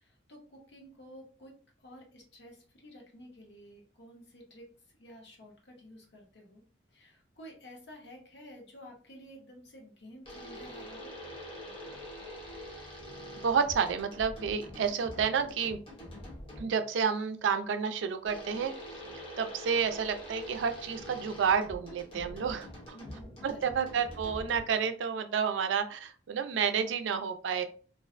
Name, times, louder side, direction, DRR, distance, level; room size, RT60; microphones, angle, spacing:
voice 1, 0.0-4.7 5.0-6.6 6.9-11.1 22.9-23.6, equal, 70° left, 0 dB, 0.8 m, -52 dB
sound 1, 10.2-16.9 18.2-24.9, equal, 30° left, 0.8 m, -45 dB
voice 2, 13.4-15.8 16.6-18.7 19.4-23.0 23.4-27.7, right 6 dB, 85° right, 8 dB, 0.3 m, -30 dB
2.4 x 2.1 x 2.4 m, 0.39 s
head